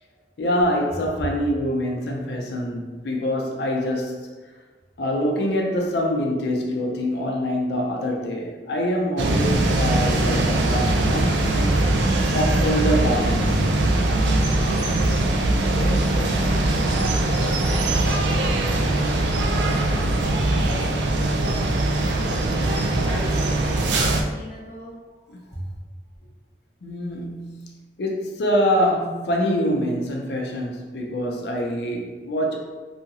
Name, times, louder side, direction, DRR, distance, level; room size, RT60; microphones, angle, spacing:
voice 1, 0.4-4.3 5.0-11.7 12.3-13.7 21.4-21.6 22.7-23.0 24.0-24.2 25.3-25.4 26.8-32.6, equal, 70° left, 0 dB, 0.5 m, -25 dB
sound 1, 9.2-24.2, right 2 dB, 75° right, 0.3 m, -21 dB
voice 2, 14.5-20.0 20.5-22.6 23.0-25.7, right 1 dB, 40° right, -9 dB, 1.1 m, -39 dB
Drawer open or close, 17.8-19.2 20.1-20.2 20.6-20.7, right 1 dB, 15° right, 0.5 m, -43 dB
2.7 x 2.5 x 2.7 m, 1.3 s
head